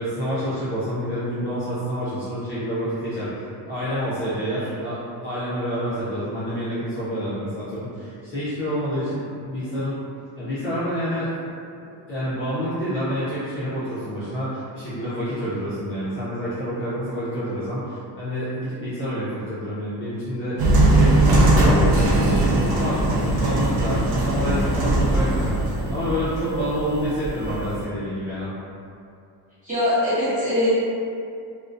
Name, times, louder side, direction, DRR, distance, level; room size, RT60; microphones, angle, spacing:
voice 1, 0.0-10.0 10.4-11.8 12.1-20.6 20.9-28.5, equal, 30° left, -13 dB, 0.5 m, -28 dB
sound 1, 20.6-27.8, right 1 dB, 55° right, 0.5 m, -20 dB
voice 2, 29.6-30.7, left 1 dB, 20° right, -13 dB, 0.8 m, -22 dB
2.3 x 2.1 x 2.5 m, 2.5 s
cardioid pair, 170°, 43 cm